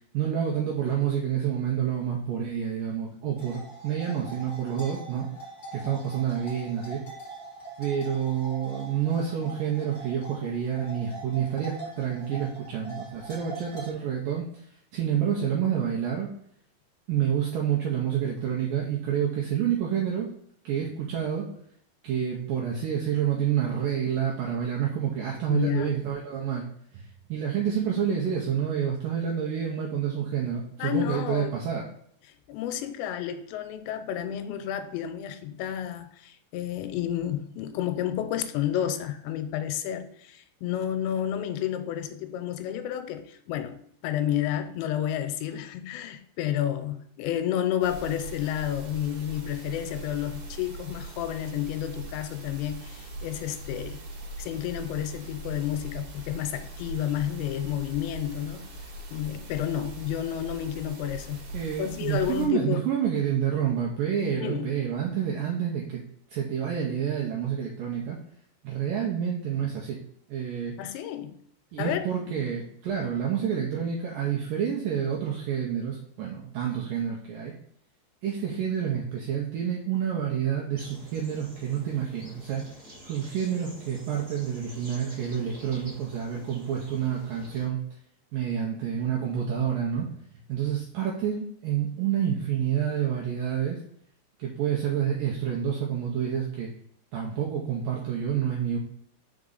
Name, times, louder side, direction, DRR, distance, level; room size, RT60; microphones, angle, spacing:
voice 1, 0.1-5.3 5.7-7.0 7.8-14.5 14.9-16.3 17.1-20.3 20.6-21.5 22.0-26.7 26.9-31.9 61.5-66.0 66.3-68.2 68.6-70.0 70.3-70.8 71.7-77.5 78.2-82.6 83.0-87.8 88.3-90.1 90.5-93.8 94.4-96.7 97.1-98.8, right 8 dB, 85° right, 2.0 m, -28 dB
sound 1, 3.3-13.9, right 3 dB, 25° left, 1.1 m, -43 dB
voice 2, 25.5-26.0 30.8-31.6 32.5-43.8 44.0-54.0 54.4-58.7 59.1-61.4 61.8-62.8 64.3-64.7 70.8-71.4 71.8-72.1 72.3-72.4, left 11 dB, 90° left, 2.9 m, -31 dB
sound 2, 47.8-62.5, right 1 dB, 60° right, 2.2 m, -41 dB
sound 3, 80.7-87.7, equal, 25° right, 1.8 m, -48 dB
5.4 x 4.8 x 3.9 m
omnidirectional pair, 5.0 m